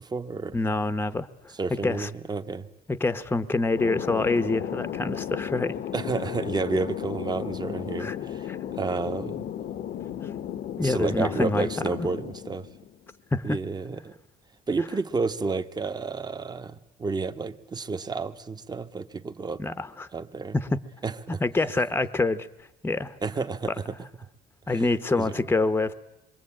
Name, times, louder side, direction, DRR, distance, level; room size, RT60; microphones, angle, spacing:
voice 1, 0.0-0.6 1.6-2.7 5.9-8.5 8.8-9.5 10.8-12.7 13.4-14.1 14.7-19.6 20.1-20.6 21.0-21.4 23.2-23.9 24.7-24.8 25.2-25.3, right 4 dB, 25° right, 10 dB, 1.2 m, -30 dB
voice 2, 0.5-2.1 2.9-5.8 8.0-8.2 8.5-8.6 10.2-10.3 10.8-11.7 13.3-13.6 19.6-20.1 20.5-20.8 21.4-22.5 22.8-23.1 24.7-25.9, left 3 dB, 10° left, 13 dB, 0.9 m, -26 dB
Thunder, 3.8-13.1, left 10 dB, 60° left, 1.0 m, -34 dB
26.5 x 23.0 x 8.8 m, 0.94 s
cardioid pair, 110°, 17 cm